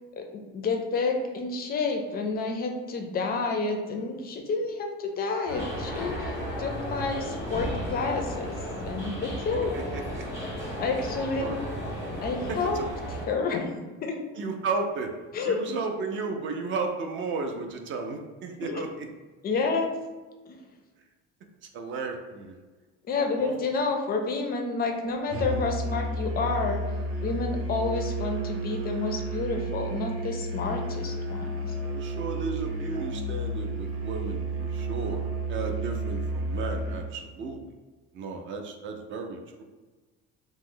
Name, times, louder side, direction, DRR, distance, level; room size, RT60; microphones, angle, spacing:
voice 1, 0.1-8.5 8.8-9.7 10.8-11.6 12.2-12.8 13.1-14.1 15.3-15.8 18.6-18.9 19.4-19.9 23.1-26.8 27.2-31.6, left 4 dB, 30° left, 3 dB, 0.4 m, -29 dB
sound 1, 5.5-13.3, equal, 10° right, 0.8 m, -34 dB
voice 2, 9.5-10.2 11.4-11.6 12.5-12.9 14.4-15.1 15.4-19.1 21.7-22.5 23.3-23.5 31.7-35.2 35.5-37.6 38.1-39.6, right 4 dB, 40° right, 4 dB, 0.4 m, -34 dB
Musical instrument, 25.3-37.2, right 2 dB, 85° right, 0.7 m, -32 dB
3.0 x 2.0 x 3.6 m, 1.3 s
cardioid pair, 150°, 30 cm